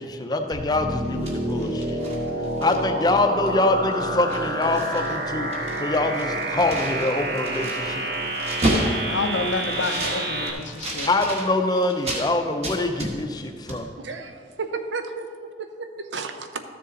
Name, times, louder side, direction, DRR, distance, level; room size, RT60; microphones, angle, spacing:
voice 1, 0.0-2.0 2.6-5.5 5.8-8.1 11.1-13.9, left 2 dB, 20° left, 6 dB, 0.5 m, -24 dB
sound 1, 0.5-10.5, right 1 dB, 60° right, 1.1 m, -28 dB
sound 2, 1.0-3.0 3.5-3.6 3.9-5.2 5.4-12.3 12.6-13.4 13.7-13.8, right 1 dB, 35° right, 1.3 m, -31 dB
voice 2, 9.1-11.1, left 3 dB, 80° left, 9 dB, 0.6 m, -29 dB
voice 3, 14.0-15.3 15.6-16.6, right 4 dB, 80° right, 8 dB, 0.7 m, -33 dB
13.0 x 6.8 x 3.8 m, 2.1 s
head